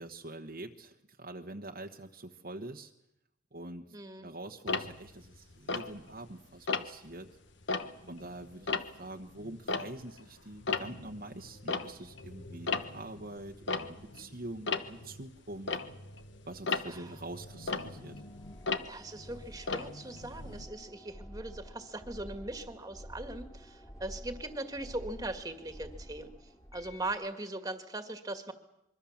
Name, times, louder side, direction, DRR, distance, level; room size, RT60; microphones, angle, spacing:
voice 1, 0.0-2.9 3.5-7.3 8.1-15.7 16.5-18.2, right 2 dB, 50° right, 4 dB, 1.2 m, -45 dB
voice 2, 3.9-4.3 16.9-17.1 18.8-26.3 26.7-28.5, right 2 dB, 20° right, 8 dB, 1.9 m, -40 dB
Tick-tock, 4.7-6.3 6.7-7.1 7.5-10.3 10.5-20.6, left 4 dB, 65° left, 1.3 m, -37 dB
sound 1, 16.8-27.3, equal, 20° left, 2.8 m, -50 dB
25.0 x 23.5 x 7.3 m, 0.82 s
head